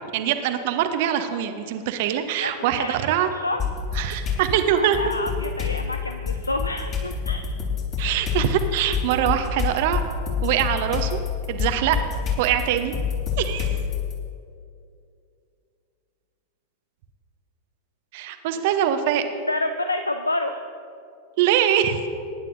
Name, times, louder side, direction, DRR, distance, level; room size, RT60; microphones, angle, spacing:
voice 1, 0.1-3.3 3.9-5.0 8.0-10.0 10.4-11.2 11.5-12.0 12.4-12.9 13.4-13.8 18.1-19.2 21.4-22.1, right 10 dB, 50° right, 8 dB, 0.9 m, -23 dB
voice 2, 2.4-2.9 3.3-3.6 4.7-7.5 19.5-20.6, left 2 dB, 80° left, 7 dB, 0.5 m, -28 dB
sound 1, 3.6-4.5 4.9-14.1, left 7 dB, 35° left, 3.4 m, -27 dB
24.0 x 11.0 x 2.7 m, 2.5 s
figure-of-eight pair, 90°, 0 cm